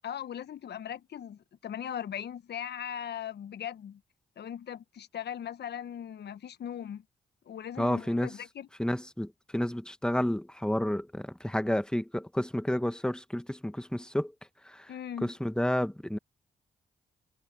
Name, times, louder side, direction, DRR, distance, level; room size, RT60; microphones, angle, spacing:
voice 1, 0.0-4.0 4.4-7.0 7.5-8.7 14.9-15.3, left 9 dB, 65° left, 1.3 m, -39 dB
voice 2, 7.8-8.4 8.8-14.3 14.6-14.9 15.2-16.2, left 1 dB, 5° left, 1.7 m, -30 dB
hypercardioid pair, 40°, 19 cm